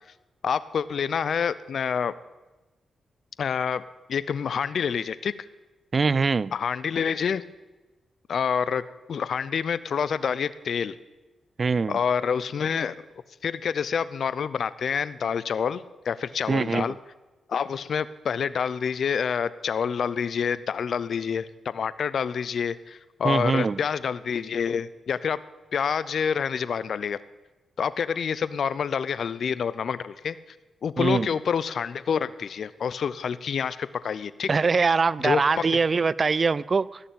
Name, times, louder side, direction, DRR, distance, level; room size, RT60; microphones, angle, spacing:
voice 1, 0.4-2.1 3.4-3.8 4.1-5.3 6.5-7.4 8.3-8.8 9.1-11.0 11.9-13.0 13.4-16.9 17.5-25.4 25.7-27.2 27.8-30.4 30.8-34.5 35.2-35.7, left 7 dB, 70° left, 0.6 m, -27 dB
voice 2, 5.9-6.5 11.6-12.0 16.5-16.9 23.2-23.8 31.0-31.3 34.5-37.0, right 4 dB, 45° right, 0.4 m, -23 dB
17.5 x 6.9 x 9.2 m
cardioid pair, 65°, 0 cm